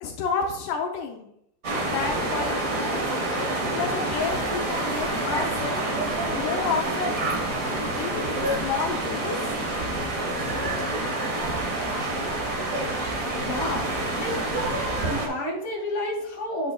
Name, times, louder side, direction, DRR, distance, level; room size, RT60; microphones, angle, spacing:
voice 1, 0.0-1.3 1.9-3.1 3.7-5.9 6.4-7.3 8.0-9.4, left 5 dB, 80° left, 2 dB, 2.2 m, -30 dB
sound 1, 1.6-15.3, right 2 dB, 40° right, 1.3 m, -27 dB
voice 2, 13.4-13.8 14.2-14.4 15.0-16.7, left 1 dB, 25° left, -3 dB, 2.1 m, -30 dB
8.7 x 7.5 x 2.3 m, 0.74 s
omnidirectional pair, 3.7 m